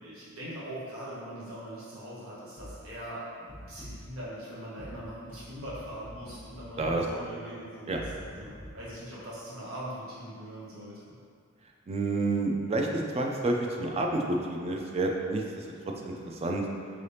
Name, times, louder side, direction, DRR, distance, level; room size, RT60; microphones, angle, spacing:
voice 1, 0.0-11.1, right 1 dB, 75° right, -8 dB, 1.0 m, -41 dB
sound 1, 2.6-3.0 3.5-4.2 4.8-7.2 7.9-8.7, equal, 10° right, 1.1 m, -46 dB
voice 2, 11.9-15.7 16.0-16.6, right 2 dB, 30° right, 1 dB, 0.4 m, -29 dB
4.8 x 3.3 x 2.8 m, 2.2 s
head